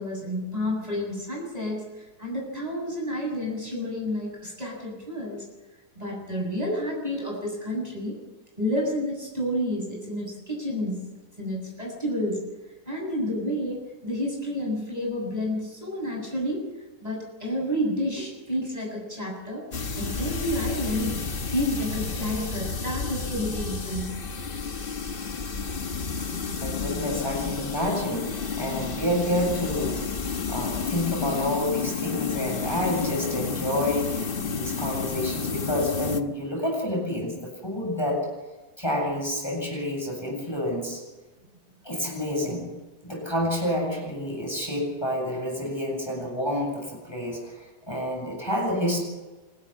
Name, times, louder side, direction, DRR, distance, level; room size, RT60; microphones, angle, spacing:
voice 1, 0.0-1.9 2.2-5.4 6.0-8.2 8.6-11.0 11.4-12.4 12.9-16.7 17.0-19.6 20.0-21.2 21.5-24.3, equal, 20° right, -2 dB, 7.7 m, -30 dB
sound 1, 19.7-36.2, left 5 dB, 35° left, 1.2 m, -31 dB
voice 2, 26.6-30.1 30.5-38.3 38.8-41.0 41.8-47.4 47.9-49.0, left 1 dB, 15° left, -1 dB, 8.0 m, -29 dB
26.0 x 13.0 x 9.9 m, 1.2 s
omnidirectional pair, 1.8 m